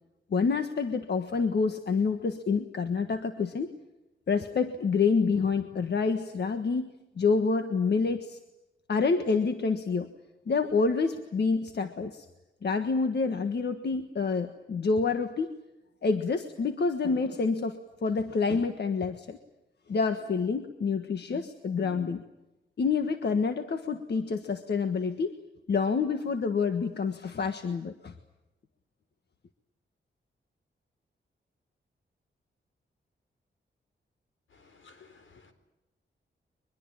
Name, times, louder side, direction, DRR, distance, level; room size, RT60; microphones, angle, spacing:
voice 1, 0.3-3.7 4.3-8.4 8.9-10.1 10.5-12.2 12.6-15.6 16.0-19.4 19.9-22.2 22.8-25.3 25.7-28.1, left 4 dB, 60° left, 8 dB, 1.5 m, -28 dB
voice 2, 34.8-35.5, left 4 dB, 80° left, 9 dB, 4.2 m, -55 dB
23.5 x 22.0 x 8.9 m, 0.98 s
wide cardioid pair, 135°, 20 cm